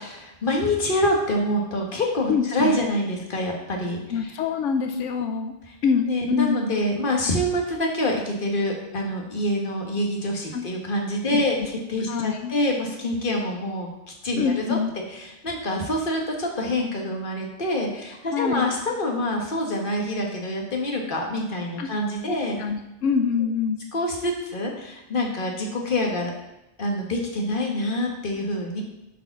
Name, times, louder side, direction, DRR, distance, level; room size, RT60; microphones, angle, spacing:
voice 1, 0.0-4.3 4.9-5.0 5.7-5.8 6.1-14.8 15.1-22.6 23.9-26.3 26.8-28.8, left 1 dB, 45° left, 0 dB, 1.6 m, -26 dB
voice 2, 2.3-2.8 4.1-5.5 5.8-6.7 10.5-10.6 11.3-11.4 12.1-12.5 14.4-14.9 18.3-18.7 21.8-21.9 22.3-23.8, left 6 dB, 90° left, 6 dB, 1.0 m, -25 dB
8.1 x 4.9 x 5.9 m, 0.93 s
omnidirectional pair, 1.2 m